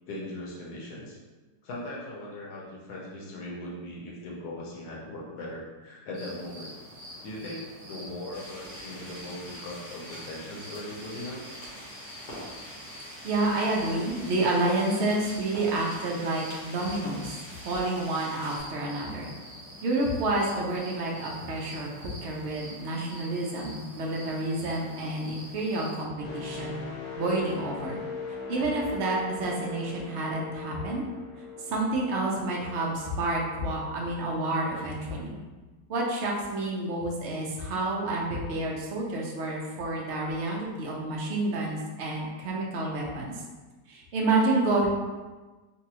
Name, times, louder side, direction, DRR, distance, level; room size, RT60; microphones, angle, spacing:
voice 1, 0.1-1.2 1.6-6.7 7.2-11.4, left 1 dB, 70° left, -4 dB, 1.2 m, -39 dB
sound 1, 6.1-26.0, equal, 60° right, 1.4 m, -46 dB
sound 2, 8.3-18.6, equal, 90° left, 1.8 m, -45 dB
voice 2, 13.2-17.3 17.6-19.3 19.8-26.8 27.2-28.0 28.5-31.1 31.7-35.4 35.9-43.3 43.9-44.9, right 2 dB, 90° right, -2 dB, 0.6 m, -29 dB
sound 3, 26.2-34.0 34.5-34.7, left 4 dB, 50° left, 0.9 m, -41 dB
4.0 x 2.2 x 2.8 m, 1.2 s
omnidirectional pair, 1.9 m